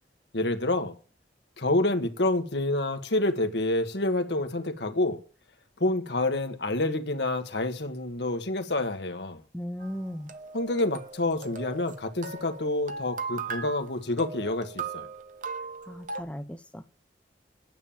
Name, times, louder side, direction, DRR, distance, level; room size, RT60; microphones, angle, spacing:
voice 1, 0.3-0.9 1.6-5.2 5.8-9.4 10.5-15.1, left 2 dB, 75° left, 1.5 m, -28 dB
voice 2, 9.5-10.3 15.8-16.8, equal, 5° left, 0.6 m, -37 dB
sound 1, 9.8-16.2, right 4 dB, 45° right, 1.1 m, -38 dB
9.4 x 7.4 x 8.9 m
head